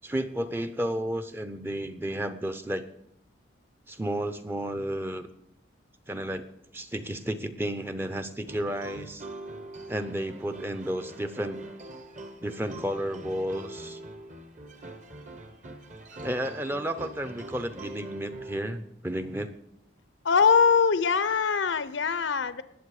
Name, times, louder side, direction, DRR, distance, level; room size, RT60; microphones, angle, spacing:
voice 1, 0.0-2.9 3.9-5.3 6.1-6.5 6.7-9.2 9.9-11.6 12.4-14.0 16.2-19.5, right 1 dB, 10° right, 9 dB, 0.6 m, -32 dB
sound 1, 8.5-18.9, right 2 dB, 40° right, 1.2 m, -43 dB
voice 2, 20.2-22.6, left 6 dB, 80° left, 14 dB, 0.7 m, -22 dB
20.0 x 7.5 x 4.9 m, 0.74 s
head